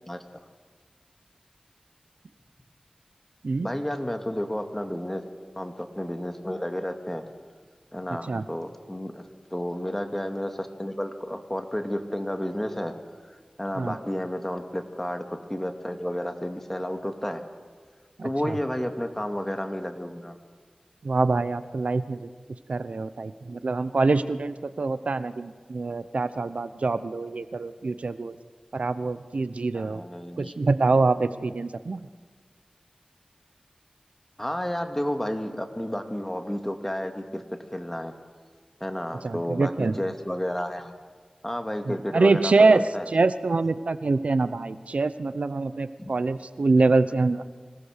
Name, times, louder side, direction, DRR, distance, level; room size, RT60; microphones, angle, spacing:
voice 1, 0.1-0.4 3.6-5.2 5.6-7.2 7.9-9.2 9.5-12.9 13.2-17.4 18.2-20.3 29.7-30.5 34.4-37.4 37.7-38.1 38.8-39.7 40.0-40.9 41.4-43.0 46.0-46.1, equal, 15° left, 5 dB, 2.2 m, -31 dB
voice 2, 18.2-18.6 21.0-22.3 22.7-28.4 28.7-30.0 30.4-32.1 39.2-39.9 41.9-47.4, right 3 dB, 85° right, 13 dB, 0.8 m, -25 dB
26.0 x 17.5 x 6.7 m, 1.5 s
wide cardioid pair, 45°, 2 cm